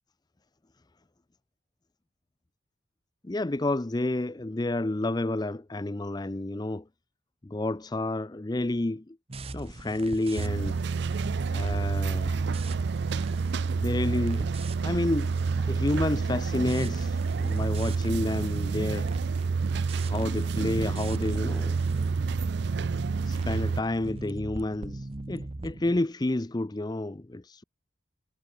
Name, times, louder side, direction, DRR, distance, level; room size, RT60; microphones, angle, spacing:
voice 1, 3.3-6.8 7.4-9.0 9.5-10.7 11.4-12.4 12.7-12.8 13.7-14.5 14.8-19.1 20.1-21.8 23.3-27.6, left 2 dB, 20° left, 0.5 m, -30 dB
sound 1, 9.3-26.0, right 2 dB, 30° right, 0.8 m, -41 dB
sound 2, 10.4-23.8, right 4 dB, 60° right, 0.4 m, -28 dB
head